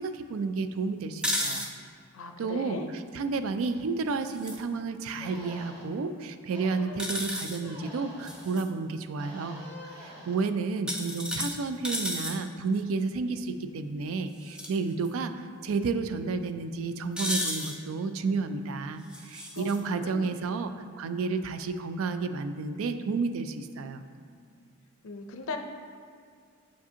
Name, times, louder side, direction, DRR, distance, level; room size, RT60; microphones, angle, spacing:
voice 1, 0.0-1.7 2.4-24.0, right 4 dB, 70° right, 10 dB, 0.3 m, -31 dB
sound 1, 1.2-1.7 4.3-4.6 7.0-7.6 8.2-8.6 10.9-12.4 14.4-14.7 15.0-15.1 17.2-17.8 19.1-19.8, equal, 5° right, 0.4 m, -33 dB
voice 2, 2.1-2.9 19.5-20.3 25.0-25.6, left 4 dB, 70° left, 5 dB, 0.5 m, -38 dB
sound 2, 4.5-4.6 5.2-5.8 6.5-7.0 7.6-8.5 9.2-10.4, left 1 dB, 20° right, 1.2 m, -46 dB
7.0 x 4.9 x 2.8 m, 2.1 s
head